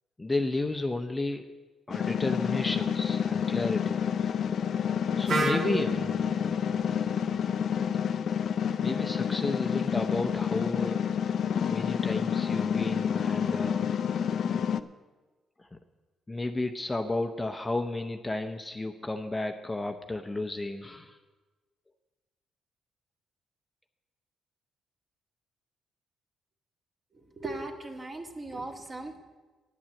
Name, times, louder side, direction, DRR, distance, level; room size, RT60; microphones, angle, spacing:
voice 1, 0.2-1.5 1.9-4.4 5.2-7.2 8.8-11.0 11.7-13.9 15.6-15.8 16.3-21.2, left 2 dB, 15° left, 6 dB, 0.7 m, -33 dB
sound 1, 1.9-14.8, left 8 dB, 60° left, 0.5 m, -29 dB
Wind instrument woodwind instrument, 5.3-9.2, right 2 dB, 70° right, 1.6 m, -35 dB
voice 2, 27.1-29.2, right 2 dB, 30° right, 2 dB, 1.6 m, -38 dB
9.8 x 8.7 x 7.6 m, 1.3 s
cardioid pair, 90°, 0 cm